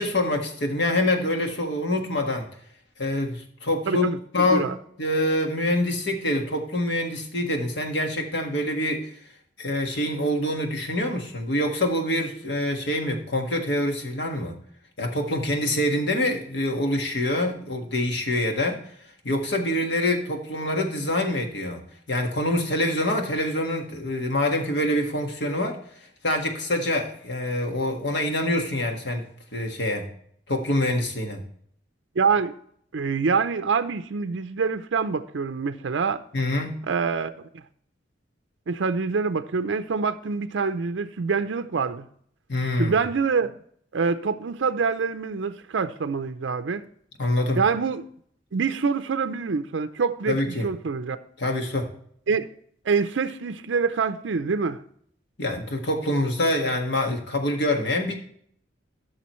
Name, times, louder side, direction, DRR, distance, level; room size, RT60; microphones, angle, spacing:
voice 1, 0.0-2.4 3.0-4.1 4.3-4.7 5.0-9.1 9.6-14.5 15.0-18.8 19.2-21.8 22.1-25.8 26.2-29.2 29.5-30.1 30.5-31.4 36.3-36.7 42.5-43.0 47.2-47.6 50.3-50.7 51.4-51.9 55.4-58.1, left 1 dB, 65° left, 1.6 m, -25 dB
voice 2, 3.9-4.7 32.2-32.5 32.9-36.2 36.9-37.6 38.7-42.1 42.8-43.6 43.9-46.8 47.6-48.1 48.5-51.2 52.3-52.5 52.8-54.8, right 5 dB, 75° right, 0.5 m, -25 dB
13.5 x 6.3 x 3.1 m
head